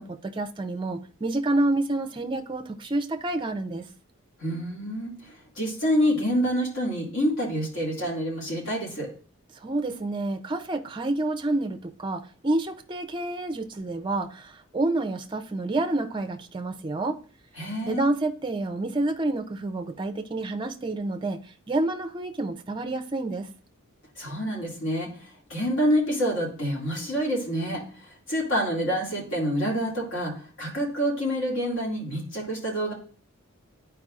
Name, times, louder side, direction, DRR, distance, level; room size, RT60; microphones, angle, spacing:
voice 1, 0.0-3.9 9.6-17.2 17.9-21.4 21.7-23.5, right 2 dB, 20° right, 0.4 m, -28 dB
voice 2, 4.4-5.1 5.6-9.1 17.6-18.0 24.2-25.1 25.5-27.8 28.3-30.3 30.6-32.9, equal, 60° left, 2.2 m, -27 dB
11.0 x 4.6 x 2.4 m
head